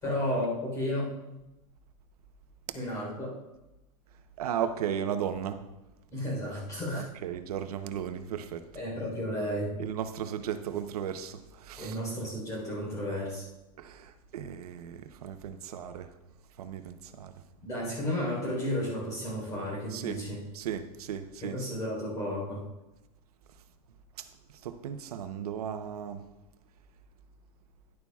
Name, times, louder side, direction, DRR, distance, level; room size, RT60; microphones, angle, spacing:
voice 1, 0.0-1.4 2.7-3.3 6.1-7.0 8.7-9.8 11.8-13.4 17.6-20.4 21.4-22.6, left 1 dB, 15° left, -3 dB, 3.9 m, -33 dB
voice 2, 4.4-5.6 6.9-8.6 9.8-11.9 13.8-16.1 16.6-17.3 19.9-20.2 20.5-21.6 24.6-26.2, right 9 dB, 90° right, 9 dB, 0.9 m, -35 dB
11.0 x 11.0 x 2.4 m, 0.99 s
supercardioid pair, 180°, 19 cm